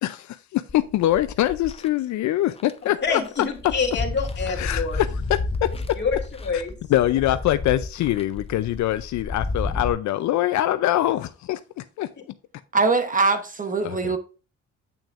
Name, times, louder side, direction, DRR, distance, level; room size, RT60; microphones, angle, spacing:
voice 1, 0.0-3.2 4.6-6.0 6.5-6.6 6.9-12.1 13.8-14.1, left 14 dB, 75° left, 0.5 m, -24 dB
sound 1, 0.7-1.9 2.6-2.7 3.0-9.9, left 3 dB, 20° left, 0.6 m, -31 dB
voice 2, 3.0-5.0 6.0-6.7, left 5 dB, 35° left, 2.2 m, -27 dB
voice 3, 12.7-14.2, right 4 dB, 30° right, 0.9 m, -22 dB
8.6 x 6.2 x 2.5 m
cardioid pair, 105°, 29 cm